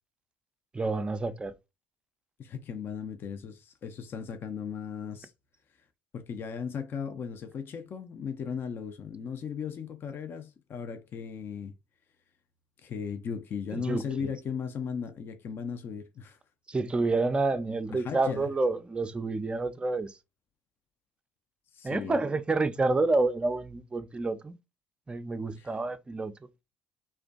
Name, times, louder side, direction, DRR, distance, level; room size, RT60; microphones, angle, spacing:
voice 1, 0.7-1.5 13.7-14.0 16.7-20.2 21.8-24.6 25.1-26.3, right 3 dB, 20° right, 0.4 m, -28 dB
voice 2, 2.4-5.3 6.1-11.7 12.8-16.4 17.9-18.5 21.7-22.2 25.6-25.7, left 6 dB, 45° left, 0.4 m, -37 dB
2.4 x 2.2 x 2.4 m
hypercardioid pair, 60°, 5 cm